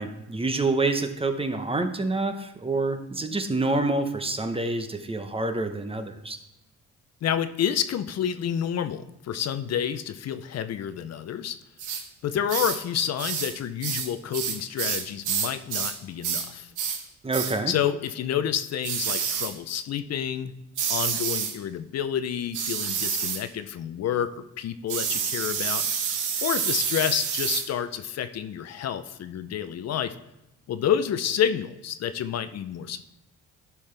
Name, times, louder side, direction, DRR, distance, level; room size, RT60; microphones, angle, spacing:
voice 1, 0.0-6.4 17.2-17.7, right 2 dB, 20° right, 8 dB, 0.9 m, -27 dB
voice 2, 7.2-11.6 12.2-16.7 17.7-20.5 20.9-30.1 30.7-33.1, left 9 dB, 55° left, 11 dB, 0.6 m, -29 dB
sound 1, 11.8-12.0 12.5-12.8 13.2-13.5 13.8-16.5 16.8-17.0 17.3-17.6 18.8-19.5 20.8-21.6 22.5-23.4 24.9-27.7, right 7 dB, 90° right, 1.1 m, -28 dB
11.5 x 5.6 x 3.3 m, 0.94 s
cardioid pair, 90°, 30 cm